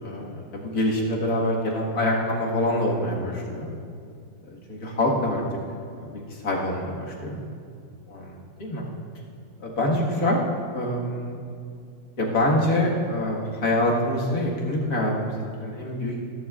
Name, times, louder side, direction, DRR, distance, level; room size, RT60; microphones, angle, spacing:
voice 1, 0.0-3.7 4.5-5.4 6.0-7.4 8.6-8.8 9.6-10.4 10.7-11.3 12.2-16.3, left 1 dB, 75° left, -3 dB, 2.3 m, -25 dB
19.5 x 11.0 x 2.5 m, 2.4 s
omnidirectional pair, 1.6 m